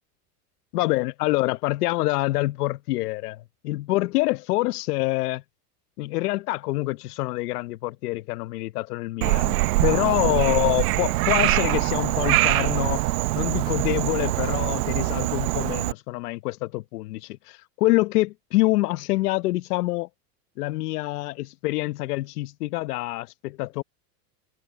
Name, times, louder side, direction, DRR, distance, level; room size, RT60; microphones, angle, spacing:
voice 1, 0.7-5.4 6.0-9.6 9.8-13.0 13.3-20.1 20.6-23.8, left 19 dB, 75° left, 1.0 m, -26 dB
Frog, 9.2-15.9, right 19 dB, 70° right, 1.1 m, -23 dB
supercardioid pair, 155°, 47 cm